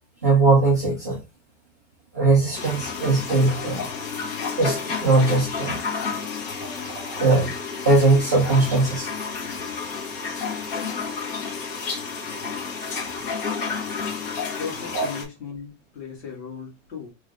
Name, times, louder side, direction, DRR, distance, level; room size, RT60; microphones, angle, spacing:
voice 1, 0.2-1.2 2.1-3.9 4.6-5.8 6.6-7.5 7.8-9.1 14.9-15.1, right 3 dB, 15° right, 0.3 m, -20 dB
sound 1, 2.5-15.2, left 5 dB, 50° left, 1.8 m, -31 dB
voice 2, 14.4-17.1, left 6 dB, 65° left, 1.9 m, -37 dB
3.6 x 3.0 x 3.4 m
supercardioid pair, 180°, 36 cm